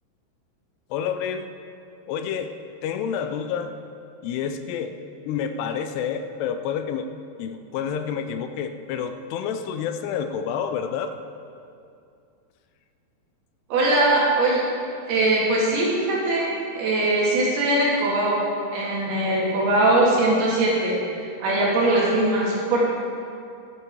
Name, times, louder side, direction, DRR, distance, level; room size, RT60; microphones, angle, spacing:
voice 1, 0.9-1.5 2.1-2.5 2.8-3.8 4.2-4.9 5.3-7.1 7.4-11.1, left 7 dB, 80° left, 8 dB, 2.6 m, -28 dB
voice 2, 13.7-14.6 15.1-16.5 16.8-18.4 18.7-22.8, right 2 dB, 65° right, -5 dB, 3.8 m, -21 dB
11.5 x 10.0 x 4.5 m, 2.5 s
omnidirectional pair, 5.0 m